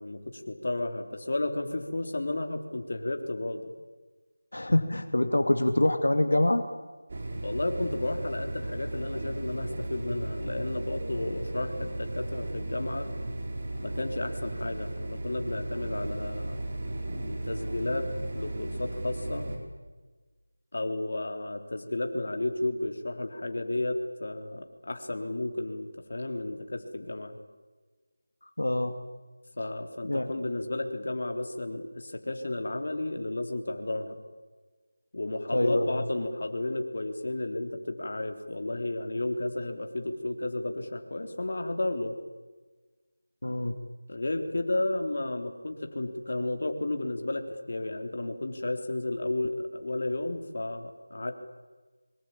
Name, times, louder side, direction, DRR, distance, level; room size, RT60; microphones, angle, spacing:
voice 1, 0.0-3.7 7.4-13.1 13.8-16.6 17.1-18.1 18.3-19.5 20.7-27.4 29.6-34.2 35.1-42.1 44.1-51.3, left 2 dB, 55° left, 5 dB, 3.7 m, -32 dB
voice 2, 4.5-6.6 28.6-28.9 30.0-30.3 35.5-35.9 43.4-43.7, left 1 dB, 85° left, 7 dB, 2.5 m, -25 dB
sound 1, 7.1-19.6, right 1 dB, 35° right, 4.5 m, -35 dB
25.5 x 24.0 x 8.8 m, 1.3 s
figure-of-eight pair, 175°, 0 cm